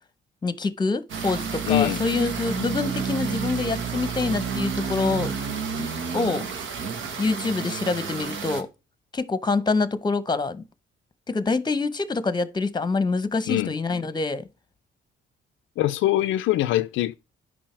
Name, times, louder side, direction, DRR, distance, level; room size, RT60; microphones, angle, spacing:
voice 1, 0.4-5.4 5.8-6.5 7.2-8.7 9.1-10.6 11.3-14.5, left 3 dB, 20° left, 0.8 m, -26 dB
sound 1, 1.1-8.6, right 6 dB, 75° right, 1.3 m, -30 dB
voice 2, 1.7-2.0 13.5-13.7 15.8-17.2, left 15 dB, 75° left, 0.4 m, -22 dB
8.7 x 5.5 x 3.3 m
cardioid pair, 90°, 20 cm